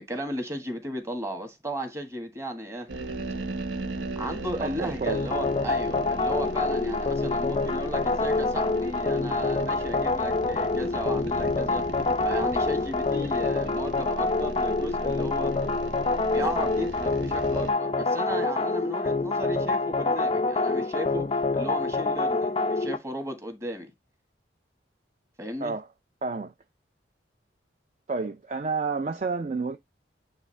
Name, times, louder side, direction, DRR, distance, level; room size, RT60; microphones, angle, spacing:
voice 1, 0.0-2.9 4.1-11.8 12.2-15.5 16.3-23.9 25.4-25.7, right 1 dB, 15° right, 1.5 m, -35 dB
sound 1, 2.9-17.7, right 2 dB, 75° right, 1.0 m, -38 dB
voice 2, 4.6-5.2 25.6-25.9 26.2-26.5 28.1-29.8, right 4 dB, 40° right, 0.4 m, -30 dB
sound 2, 5.1-23.0, left 3 dB, 30° left, 0.3 m, -26 dB
8.8 x 3.4 x 3.3 m
head